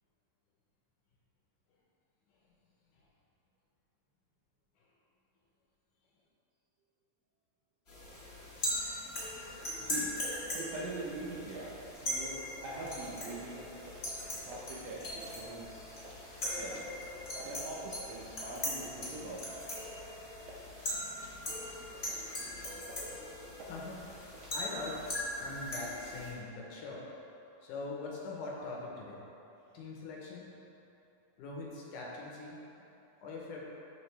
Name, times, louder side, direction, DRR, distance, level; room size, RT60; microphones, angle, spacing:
sound 1, 7.9-26.3, left 1 dB, 50° left, 0.7 m, -40 dB
voice 1, 9.8-10.1 10.5-11.8 12.0-13.7 14.4-16.8 17.4-19.8, right 2 dB, 75° right, -7 dB, 1.6 m, -43 dB
sound 2, 13.2-13.4 13.9-14.1 14.5-14.7 15.2-15.4 16.0-16.2 16.7-16.9 17.4-17.6 18.1-18.3 19.0-19.2 19.8-20.0 20.5-20.7 21.2-21.4 22.1-22.3 22.9-23.2 23.6-23.8 24.3-24.6, right 2 dB, 90° right, 2.4 m, -52 dB
voice 2, 23.6-24.1 24.5-25.1 25.4-27.1 27.6-29.3 29.7-30.5 31.4-32.8 33.2-33.6, left 3 dB, 75° left, -3 dB, 2.2 m, -42 dB
11.5 x 3.9 x 3.3 m, 2.9 s
omnidirectional pair, 3.8 m